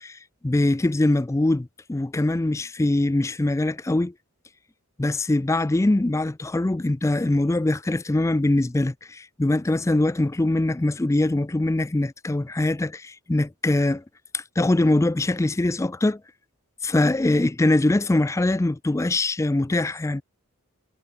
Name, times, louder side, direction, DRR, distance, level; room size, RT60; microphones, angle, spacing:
voice 1, 0.0-4.1 5.0-14.0 14.3-16.2 16.8-20.2, left 2 dB, 15° left, 0.4 m, -23 dB
head